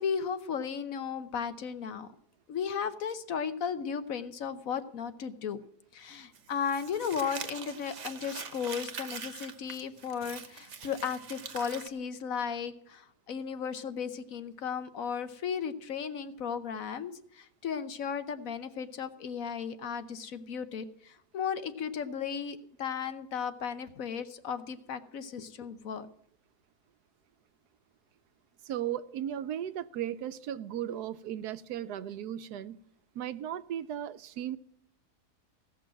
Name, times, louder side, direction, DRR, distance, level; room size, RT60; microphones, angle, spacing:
voice 1, 0.0-2.1 2.5-5.6 5.9-26.1, left 7 dB, 60° left, 11 dB, 1.2 m, -35 dB
Crumpling crinkling, 6.3-11.9, right 6 dB, 50° right, 1.3 m, -43 dB
voice 2, 28.6-32.8 33.1-34.6, right 10 dB, 75° right, 13 dB, 1.2 m, -36 dB
16.5 x 6.2 x 7.5 m, 0.70 s
omnidirectional pair, 1.7 m